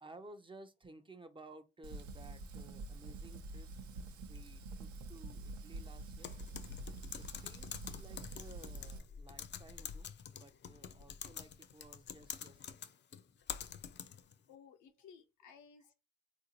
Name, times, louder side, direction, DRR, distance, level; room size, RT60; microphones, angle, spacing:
voice 1, 0.0-3.7 4.2-6.3 7.2-12.9, right 2 dB, 15° right, 0.5 m, -56 dB
Fire, 1.8-9.0, right 2 dB, 75° right, 0.7 m, -47 dB
Typing, 6.2-14.3, left 8 dB, 40° left, 0.4 m, -47 dB
voice 2, 14.5-15.9, left 7 dB, 80° left, 0.7 m, -58 dB
3.6 x 2.6 x 2.8 m
cardioid pair, 90°, 30 cm